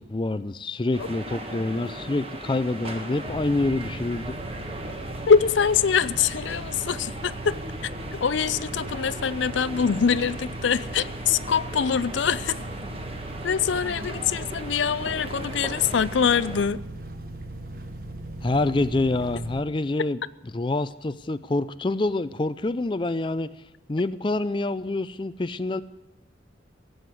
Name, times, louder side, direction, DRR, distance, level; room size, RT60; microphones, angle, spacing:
voice 1, 0.0-4.4 18.4-20.2 20.5-23.5 23.9-25.8, left 2 dB, 25° left, 0.4 m, -26 dB
sound 1, 0.9-16.7, right 1 dB, 30° right, 1.6 m, -38 dB
sound 2, 3.3-19.6, right 2 dB, 50° right, 1.3 m, -38 dB
voice 2, 5.3-7.6 8.1-12.6 13.4-16.8, left 6 dB, 80° left, 0.5 m, -24 dB
16.5 x 7.9 x 9.8 m
head